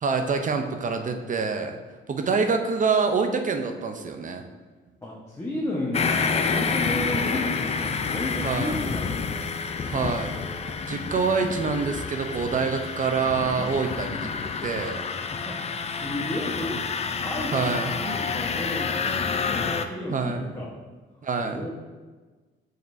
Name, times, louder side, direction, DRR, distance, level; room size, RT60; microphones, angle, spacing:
voice 1, 0.0-1.8 2.1-4.4 8.4-8.8 9.8-10.4 10.9-14.3 14.6-15.1 17.5-17.9 20.1-20.5 21.2-21.6, right 5 dB, 40° right, 5 dB, 0.6 m, -26 dB
voice 2, 5.0-9.5 15.3-16.9 17.2-19.2 19.4-20.7 21.4-21.7, left 1 dB, 15° left, -5 dB, 1.1 m, -33 dB
sound 1, 5.9-19.9, left 5 dB, 30° left, 0.5 m, -29 dB
7.5 x 5.4 x 2.6 m, 1.3 s
cardioid pair, 90°, 20 cm